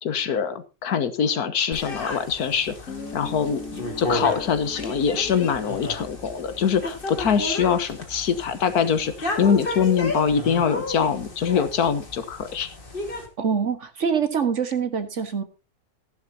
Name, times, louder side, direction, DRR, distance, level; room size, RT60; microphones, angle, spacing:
voice 1, 0.0-12.7, left 7 dB, 85° left, 12 dB, 1.7 m, -24 dB
sound 1, 1.7-13.3, left 2 dB, 35° left, 2.2 m, -33 dB
Guitar, 2.9-7.4, left 3 dB, 65° left, 2.4 m, -40 dB
voice 2, 13.4-15.4, right 6 dB, 55° right, 8 dB, 1.8 m, -24 dB
14.5 x 11.0 x 2.8 m, 0.31 s
omnidirectional pair, 1.6 m